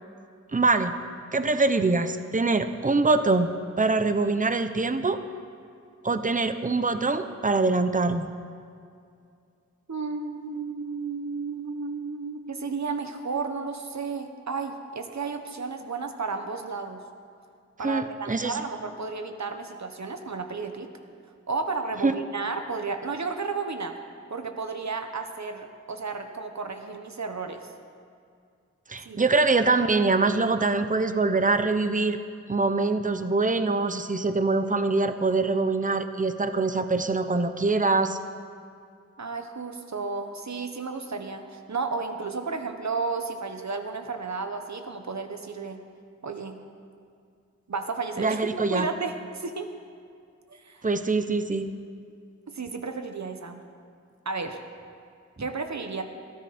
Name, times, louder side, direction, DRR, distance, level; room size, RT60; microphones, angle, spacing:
voice 1, 0.5-0.9 1.3-5.2 6.0-8.3 17.8-18.6 22.0-22.1 28.9-32.2 32.5-38.2 48.2-48.9 50.8-51.7, right 3 dB, 25° right, 9 dB, 0.8 m, -24 dB
voice 2, 9.9-17.0 17.8-20.9 21.5-24.0 24.3-27.6 29.0-29.2 39.2-45.8 46.2-46.6 47.7-48.4 48.7-49.7 50.5-50.8 52.5-53.6 54.2-54.6 55.4-56.0, right 4 dB, 70° right, 6 dB, 1.3 m, -33 dB
21.0 x 14.0 x 4.3 m, 2.3 s
wide cardioid pair, 90°, 29 cm